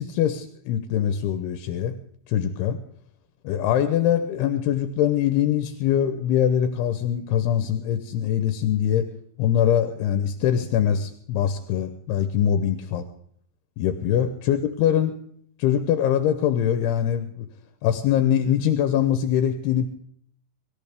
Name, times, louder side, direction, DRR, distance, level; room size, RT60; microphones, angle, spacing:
voice 1, 0.0-1.9 2.3-2.8 3.4-9.1 9.4-13.0 13.8-15.1 15.6-17.5 17.8-19.9, left 9 dB, 80° left, 8 dB, 2.7 m, -23 dB
24.5 x 13.5 x 3.5 m, 0.64 s
omnidirectional pair, 4.7 m